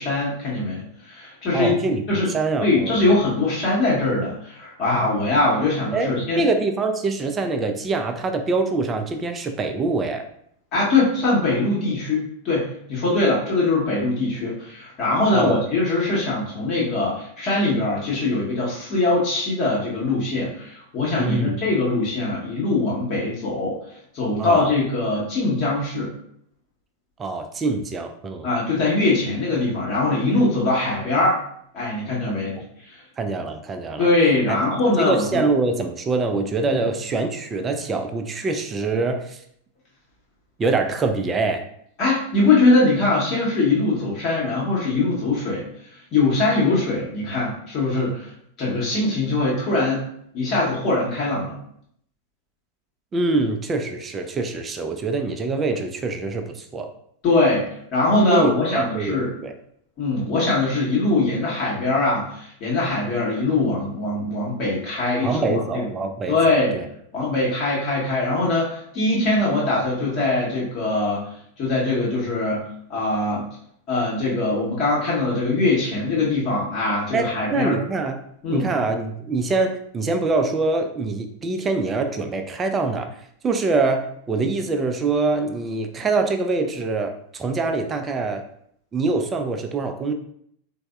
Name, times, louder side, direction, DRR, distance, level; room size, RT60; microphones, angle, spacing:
voice 1, 0.0-1.8 2.1-2.3 2.6-6.4 10.7-23.8 24.1-26.1 28.4-31.4 31.7-32.6 32.9-33.0 34.0-35.4 36.6-36.8 42.0-45.6 46.1-48.3 48.6-50.0 50.3-51.6 57.2-57.7 57.9-59.3 60.0-65.9 66.3-66.8 67.1-71.2 71.6-72.6 72.9-73.4 73.9-77.8 78.4-78.7, left 2 dB, 40° left, -6 dB, 0.8 m, -22 dB
voice 2, 1.5-2.0 2.3-3.0 5.9-10.2 15.3-15.6 21.2-21.6 24.4-24.7 27.2-28.5 32.2-32.6 33.2-34.1 34.5-34.6 35.0-39.4 40.6-41.6 53.1-56.9 58.3-59.5 65.2-66.9 77.1-78.2 78.5-83.1 83.4-88.4 88.9-90.1, right 3 dB, 20° right, 6 dB, 0.3 m, -24 dB
3.3 x 2.0 x 2.2 m, 0.68 s
figure-of-eight pair, 90°, 0 cm